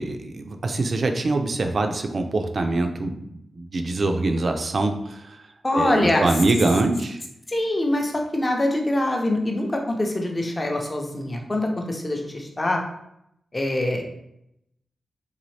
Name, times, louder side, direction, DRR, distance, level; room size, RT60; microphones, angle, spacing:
voice 1, 0.0-5.5 5.7-7.2, right 2 dB, 45° right, 5 dB, 0.4 m, -24 dB
voice 2, 5.6-6.2 7.5-12.8 13.5-14.0, left 1 dB, 20° left, 2 dB, 0.6 m, -24 dB
3.9 x 3.4 x 3.2 m, 0.79 s
wide cardioid pair, 170°, 0 cm